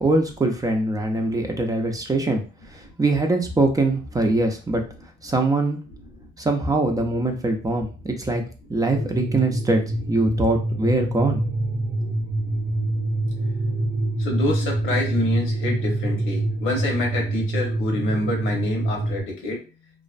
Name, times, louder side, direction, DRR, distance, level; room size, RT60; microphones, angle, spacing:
voice 1, 0.0-2.4 2.7-4.8 5.2-5.8 6.4-8.4 8.7-11.4 12.0-12.1, right 2 dB, 15° right, 3 dB, 0.5 m, -22 dB
sound 1, 8.8-19.2, right 2 dB, 70° right, 0.6 m, -25 dB
voice 2, 14.2-19.6, left 2 dB, 90° left, 0 dB, 1.0 m, -27 dB
2.4 x 2.1 x 2.4 m, 0.35 s
cardioid pair, 90°, 20 cm